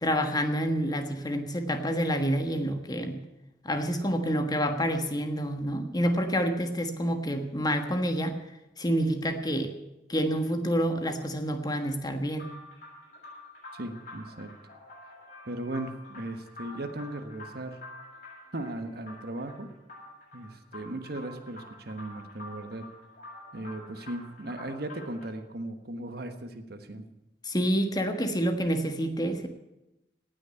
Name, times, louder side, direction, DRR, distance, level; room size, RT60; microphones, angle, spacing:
voice 1, 0.0-3.2 3.6-8.4 8.8-9.7 10.1-12.5 27.4-29.5, equal, 25° left, 7 dB, 1.3 m, -28 dB
sound 1, 12.4-25.3, left 1 dB, 45° left, 7.3 m, -48 dB
voice 2, 13.7-14.5 15.5-17.8 18.5-19.7 20.3-22.9 23.5-27.0, right 1 dB, 60° right, 8 dB, 1.3 m, -37 dB
18.0 x 6.4 x 9.5 m, 0.94 s
head